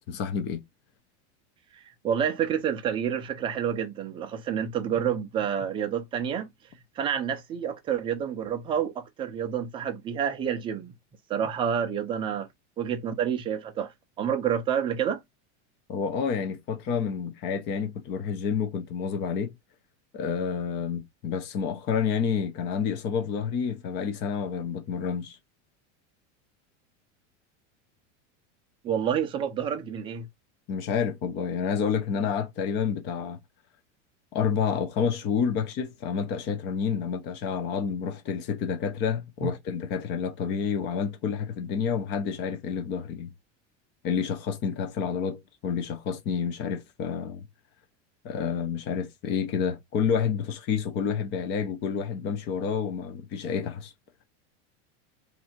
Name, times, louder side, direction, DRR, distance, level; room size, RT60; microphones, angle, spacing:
voice 1, 0.1-0.6 15.9-19.5 20.1-25.4 30.7-33.4 34.3-43.3 44.0-47.5 48.2-53.9, left 6 dB, 30° left, 0.6 m, -29 dB
voice 2, 2.0-6.5 7.0-10.9 11.3-12.5 12.8-13.9 14.2-15.2 28.8-30.3 39.4-39.5, right 8 dB, 15° right, 0.4 m, -28 dB
2.7 x 2.5 x 4.3 m
supercardioid pair, 165°, 35 cm